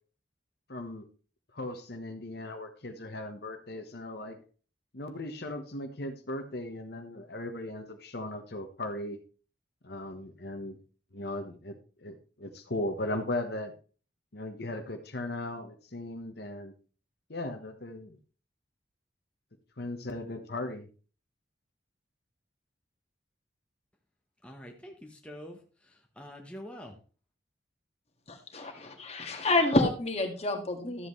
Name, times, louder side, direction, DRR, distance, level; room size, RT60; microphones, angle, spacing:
voice 1, 0.7-1.1 1.5-4.4 4.9-9.2 9.8-10.8 11.1-11.8 12.0-13.7 14.3-16.7 17.3-18.2 19.8-20.9, left 1 dB, 60° left, 5 dB, 1.2 m, -37 dB
voice 2, 24.4-25.6 25.8-27.0, equal, 5° left, 1 dB, 1.1 m, -46 dB
voice 3, 28.5-31.1, left 2 dB, 35° left, 4 dB, 1.8 m, -28 dB
13.0 x 7.8 x 3.2 m, 0.37 s
head